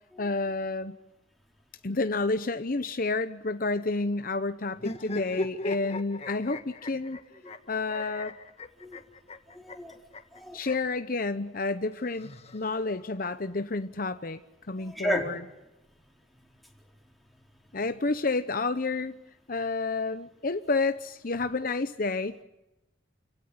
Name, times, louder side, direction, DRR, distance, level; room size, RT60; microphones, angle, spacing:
voice 1, 0.2-0.9 1.8-7.2 7.7-8.4 10.5-14.4 14.7-15.4 17.7-19.1 19.5-22.4, left 3 dB, 50° left, 10 dB, 0.9 m, -30 dB
sound 1, 4.8-11.0 11.9-13.1, left 1 dB, 35° left, 1.7 m, -39 dB
voice 2, 9.5-10.0 10.3-10.6 14.8-15.3, equal, ahead, 1 dB, 4.1 m, -32 dB
29.0 x 17.0 x 9.9 m, 0.99 s
head